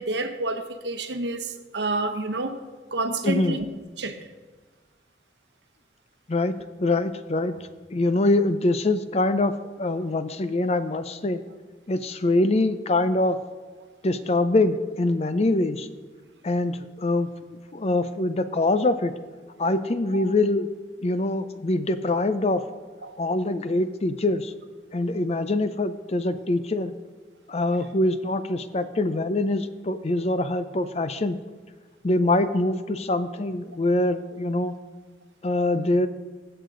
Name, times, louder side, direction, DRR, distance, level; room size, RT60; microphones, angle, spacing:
voice 1, 0.0-2.6 2.9-3.7 4.0-4.3 20.1-20.3 23.0-23.2, right 2 dB, 75° right, 8 dB, 0.9 m, -29 dB
voice 2, 3.2-3.6 6.3-7.5 7.9-9.5 9.8-11.4 11.9-13.4 14.0-15.9 16.4-17.3 17.7-19.1 19.6-20.7 21.0-22.6 23.2-24.5 24.9-26.9 27.5-31.4 32.0-34.7 35.4-36.1, left 2 dB, 35° left, 11 dB, 0.5 m, -24 dB
16.0 x 6.7 x 3.8 m, 1.4 s
head